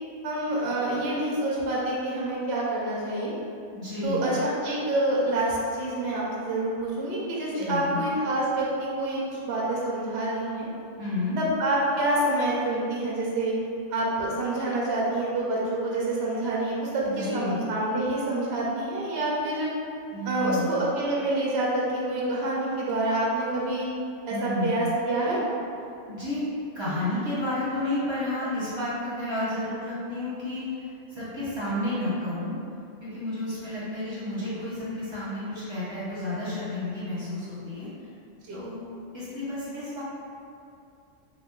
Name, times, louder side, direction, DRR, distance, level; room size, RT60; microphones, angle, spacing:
voice 1, 0.2-3.3 4.0-10.7 11.4-13.5 13.9-19.7 20.2-23.9 24.3-25.4 38.5-38.6, right 1 dB, 65° right, -5 dB, 0.8 m, -27 dB
voice 2, 3.7-4.2 7.5-8.0 11.0-11.4 17.0-17.6 20.1-20.7 24.3-24.8 26.1-32.6 33.0-37.9 38.5-38.8 39.1-40.0, left 1 dB, 25° right, -12 dB, 1.0 m, -31 dB
2.9 x 2.2 x 3.6 m, 2.5 s
omnidirectional pair, 1.3 m